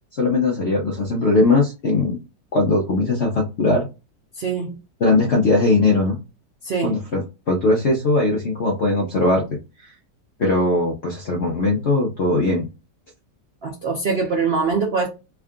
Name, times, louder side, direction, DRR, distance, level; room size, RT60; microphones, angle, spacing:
voice 1, 0.1-2.2 2.5-3.9 5.0-6.2 6.8-7.2 7.5-9.4 9.8-9.9 10.4-12.7, left 2 dB, 55° left, 0.8 m, -19 dB
voice 2, 4.3-4.8 6.6-7.0 13.6-15.1, right 4 dB, 90° right, 0.5 m, -23 dB
3.6 x 2.3 x 3.6 m
omnidirectional pair, 1.9 m